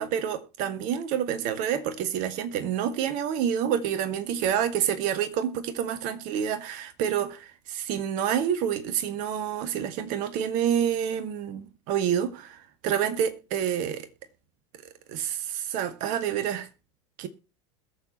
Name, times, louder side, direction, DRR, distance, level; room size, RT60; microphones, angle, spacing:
voice 1, 0.0-14.1 15.1-16.7 17.2-17.3, right 9 dB, 55° right, 2.0 m, -28 dB
21.5 x 7.2 x 3.0 m
hypercardioid pair, 80°, 16 cm